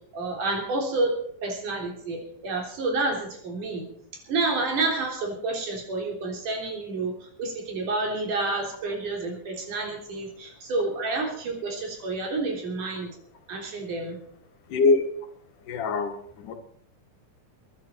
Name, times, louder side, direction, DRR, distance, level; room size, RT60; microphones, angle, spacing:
voice 1, 0.1-3.9 4.3-13.1 13.5-14.2, right 3 dB, 75° right, 1 dB, 5.0 m, -29 dB
voice 2, 14.7-15.1 15.6-16.5, left 3 dB, 80° left, 5 dB, 3.2 m, -24 dB
23.0 x 10.5 x 4.4 m, 0.62 s
omnidirectional pair, 3.7 m